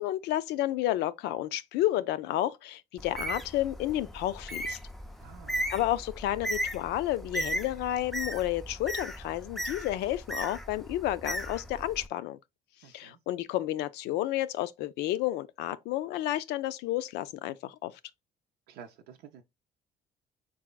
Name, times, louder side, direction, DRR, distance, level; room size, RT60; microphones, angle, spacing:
voice 1, 0.0-4.8 5.7-12.4 12.9-17.9, left 14 dB, 80° left, 0.4 m, -31 dB
Bird, 3.0-12.1, right 1 dB, ahead, 0.4 m, -37 dB
voice 2, 5.2-5.7 12.8-13.2 18.7-19.4, right 7 dB, 90° right, 0.6 m, -50 dB
4.7 x 4.1 x 2.2 m
cardioid pair, 110°, 17 cm